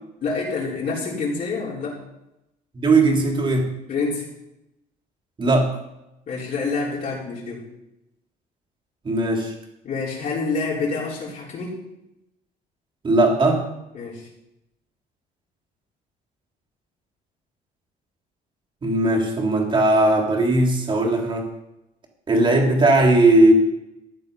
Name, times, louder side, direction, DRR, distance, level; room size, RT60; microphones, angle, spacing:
voice 1, 0.2-2.0 3.9-4.3 6.3-7.7 9.8-11.8 13.9-14.3, left 4 dB, 50° left, -6 dB, 4.3 m, -27 dB
voice 2, 2.7-3.7 5.4-5.8 9.0-9.5 13.0-13.7 18.8-21.5 22.3-23.5, right 2 dB, 30° right, 1 dB, 3.4 m, -18 dB
14.5 x 10.5 x 5.4 m, 0.89 s
cardioid pair, 110°, 17 cm